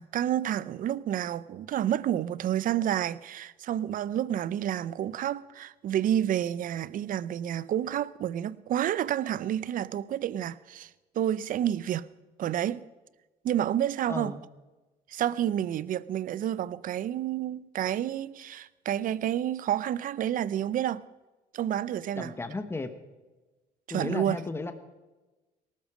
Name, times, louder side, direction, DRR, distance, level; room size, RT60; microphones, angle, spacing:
voice 1, 0.0-12.1 12.4-12.9 13.4-14.4 15.1-21.0 21.5-22.3 23.9-24.4, right 11 dB, 55° right, 0.6 m, -29 dB
voice 2, 22.2-22.9 23.9-24.7, left 3 dB, 15° left, 1.3 m, -34 dB
19.0 x 12.5 x 5.0 m
cardioid pair, 110°, 17 cm